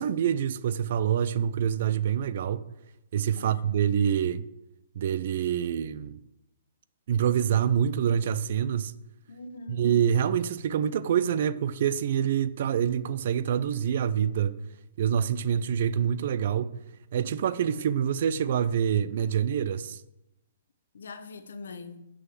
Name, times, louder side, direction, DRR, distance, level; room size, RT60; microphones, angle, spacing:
voice 1, 0.0-2.6 3.1-4.5 5.0-6.2 7.1-8.9 9.8-14.6 15.0-16.7 17.1-20.0, right 9 dB, 60° right, 0.6 m, -26 dB
voice 2, 3.3-3.9 9.3-9.9 20.9-22.0, left 3 dB, 80° left, 1.0 m, -43 dB
6.3 x 6.3 x 7.5 m
hypercardioid pair, 140°, 0 cm